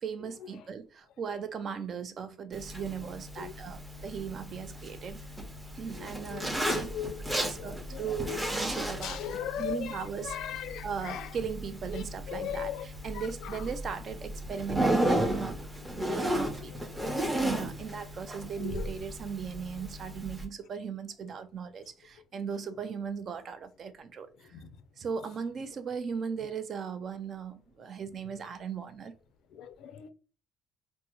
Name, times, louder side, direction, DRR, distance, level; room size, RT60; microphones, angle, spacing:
voice 1, 0.0-5.2 5.8-6.9 7.3-10.3 10.8-15.6 15.9-24.5 25.0-29.1, right 6 dB, 45° right, 0.4 m, -38 dB
Zipper (clothing), 2.5-20.4, right 1 dB, 10° right, 0.6 m, -34 dB
voice 2, 6.0-8.4 9.0-11.3 12.0-12.9 13.1-13.6 16.6-16.8 18.6-18.9 24.5-24.7 29.5-30.1, left 10 dB, 70° left, 0.4 m, -39 dB
3.4 x 2.0 x 2.9 m
cardioid pair, 130°, 0 cm